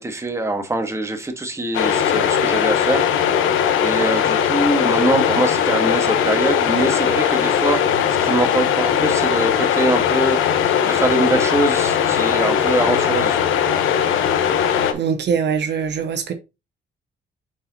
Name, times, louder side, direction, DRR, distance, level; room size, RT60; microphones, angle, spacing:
voice 1, 0.0-3.1 3.8-7.9 8.2-10.4 10.8-13.4, right 2 dB, 15° right, 1.4 m, -23 dB
sound 1, 1.7-14.9, left 8 dB, 85° left, 1.0 m, -19 dB
voice 2, 14.9-16.3, right 7 dB, 60° right, 0.9 m, -22 dB
8.6 x 4.3 x 2.8 m
cardioid pair, 90°, 20 cm